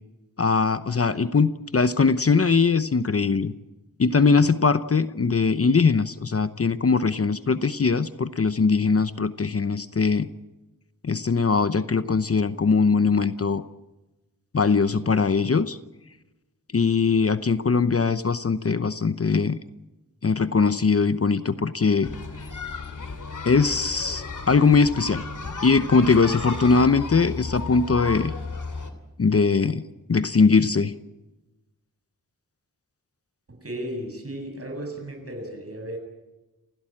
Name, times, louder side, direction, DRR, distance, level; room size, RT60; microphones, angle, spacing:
voice 1, 0.4-3.5 4.0-10.3 11.0-13.6 14.5-15.8 16.7-19.6 20.2-22.1 23.4-25.2 25.6-28.3 29.2-29.8 30.1-30.9, left 4 dB, 45° left, 12 dB, 0.9 m, -21 dB
sound 1, 22.0-28.9, left 3 dB, 60° left, 3.2 m, -34 dB
voice 2, 33.5-36.0, right 1 dB, 45° right, 4 dB, 7.4 m, -35 dB
30.0 x 16.0 x 8.8 m, 1.1 s
wide cardioid pair, 95°, 34 cm